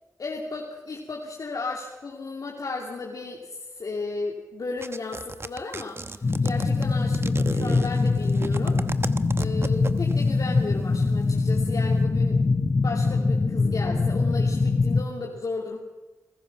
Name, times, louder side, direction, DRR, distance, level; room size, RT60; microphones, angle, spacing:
voice 1, 0.2-8.8 9.4-12.4 12.8-15.8, left 3 dB, 65° left, -2 dB, 2.8 m, -34 dB
sound 1, 4.8-10.3, right 3 dB, 40° right, 1.2 m, -33 dB
sound 2, 6.2-15.0, left 3 dB, 50° left, 1.7 m, -23 dB
29.0 x 15.5 x 5.9 m, 1.1 s
cardioid pair, 45°, 7 cm